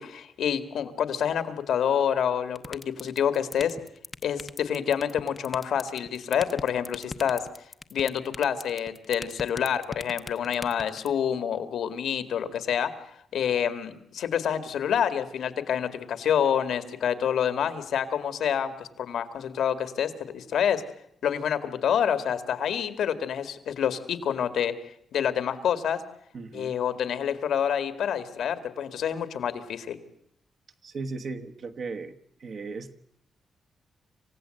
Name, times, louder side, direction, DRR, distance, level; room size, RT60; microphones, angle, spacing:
voice 1, 0.0-3.8 4.2-7.4 7.9-12.9 13.3-20.8 21.2-24.7 25.1-26.0 26.5-30.0, left 8 dB, 70° left, 12 dB, 2.0 m, -27 dB
sound 1, 2.6-11.1, left 3 dB, 20° left, 0.9 m, -37 dB
voice 2, 26.3-26.8 30.8-32.9, right 4 dB, 45° right, 6 dB, 1.3 m, -37 dB
27.5 x 16.5 x 7.7 m, 0.71 s
wide cardioid pair, 180°, 0 cm